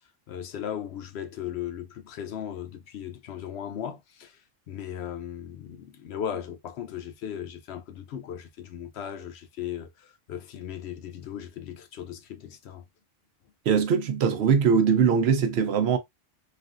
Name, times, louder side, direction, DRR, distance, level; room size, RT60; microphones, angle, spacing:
voice 1, 0.3-4.4 4.7-12.8, left 9 dB, 65° left, 0.8 m, -37 dB
voice 2, 13.7-16.0, right 6 dB, 65° right, 0.8 m, -21 dB
3.3 x 2.4 x 2.4 m
omnidirectional pair, 1.2 m